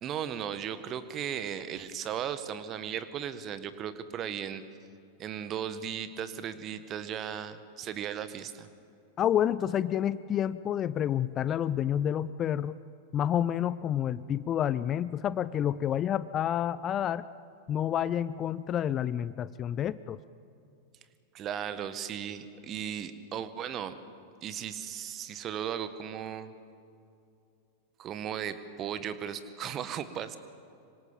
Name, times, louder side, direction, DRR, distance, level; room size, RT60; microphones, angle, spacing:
voice 1, 0.0-4.6 5.2-8.7 21.3-24.0 24.4-26.5 28.0-30.4, right 9 dB, 30° right, 12 dB, 1.6 m, -36 dB
voice 2, 9.2-12.8 13.1-17.2 17.7-20.2, left 10 dB, 30° left, 17 dB, 0.6 m, -29 dB
26.0 x 25.0 x 7.3 m, 2.6 s
figure-of-eight pair, 90°, 0 cm